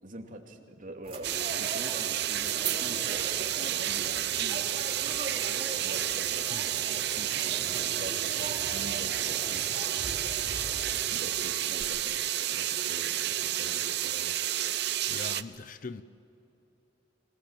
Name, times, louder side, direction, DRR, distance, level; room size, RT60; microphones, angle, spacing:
voice 1, 0.0-5.2 5.8-10.2 11.1-14.3, right 1 dB, 45° right, 2.7 m, -45 dB
sound 1, 1.0-11.0, right 1 dB, 30° right, 3.5 m, -42 dB
sound 2, 1.2-15.4, right 12 dB, 65° right, 0.8 m, -30 dB
voice 2, 14.7-16.0, left 4 dB, 45° left, 0.7 m, -42 dB
26.0 x 19.0 x 8.8 m
head